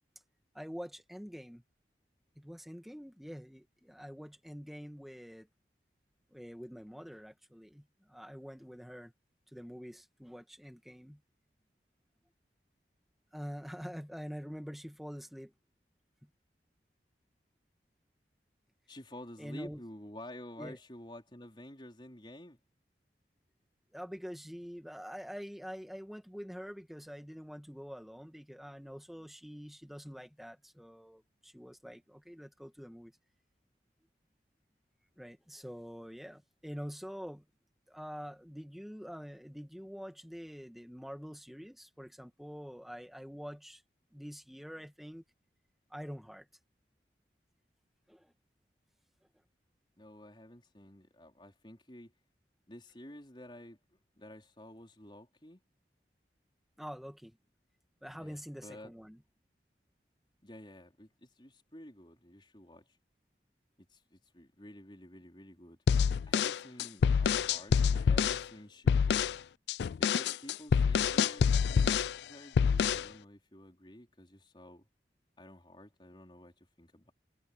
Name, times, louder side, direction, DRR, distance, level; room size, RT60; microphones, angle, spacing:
voice 1, 0.5-1.6 2.4-5.5 6.3-9.1 9.5-11.2 13.3-15.5 16.2-16.3 19.4-19.8 20.6-20.8 23.9-33.1 35.2-37.4 37.9-43.8 44.1-45.2 45.9-46.5 48.1-48.3 56.8-57.4 58.0-59.2, equal, ahead, 2.0 m, -46 dB
voice 2, 18.9-22.6 50.0-52.1 52.7-53.8 54.2-55.6 58.2-58.9 60.4-62.9 63.8-65.8 66.2-69.3 70.0-74.9 75.4-77.1, left 1 dB, 25° left, 4.5 m, -51 dB
sound 1, 65.9-68.4 68.9-69.4 69.7-72.2 72.6-73.1, left 6 dB, 70° left, 0.3 m, -27 dB
head